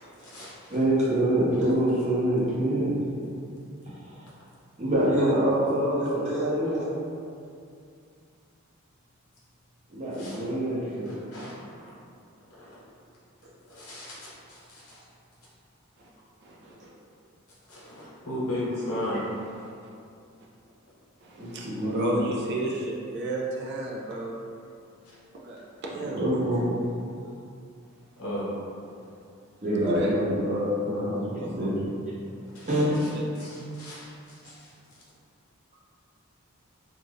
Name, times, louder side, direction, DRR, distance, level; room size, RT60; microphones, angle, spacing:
voice 1, 0.2-0.8 6.7-6.8 10.1-10.4 11.0-11.9 12.5-12.8 13.6-15.0 17.7-19.2 25.0-25.2 27.1-27.3 28.2-28.5 32.4-32.7 33.0-33.1 33.3-34.7, left 1 dB, 80° left, -8 dB, 1.0 m, -36 dB
voice 2, 0.7-3.4 4.0-4.2 4.8-6.9 9.9-11.1 21.4-22.2 26.1-26.7 29.6-31.9 32.7-33.2, right 1 dB, 30° right, -9 dB, 0.8 m, -26 dB
voice 3, 16.4-16.8 19.6-19.7 21.2-24.4 25.3-26.2 29.9-30.1 31.3-31.7 32.7-33.2, right 1 dB, 50° right, -2 dB, 0.4 m, -33 dB
2.5 x 2.4 x 3.3 m, 2.4 s
head